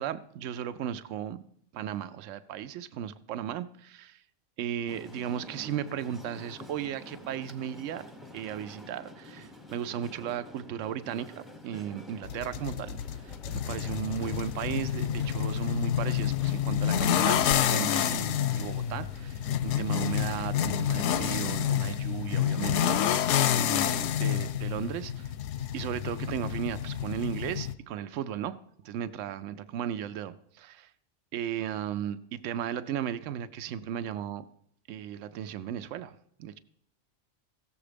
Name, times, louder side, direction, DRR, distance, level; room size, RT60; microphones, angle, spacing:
voice 1, 0.0-1.4 1.7-4.2 4.6-8.0 8.3-25.3 25.7-28.6 28.8-30.9 31.3-34.4 34.9-36.6, right 10 dB, 85° right, 13 dB, 0.9 m, -36 dB
sound 1, 4.9-23.9, left 1 dB, ahead, 0.5 m, -49 dB
sound 2, 12.2-27.7, left 9 dB, 85° left, 0.9 m, -28 dB
15.5 x 7.1 x 5.0 m, 0.71 s
omnidirectional pair, 1.3 m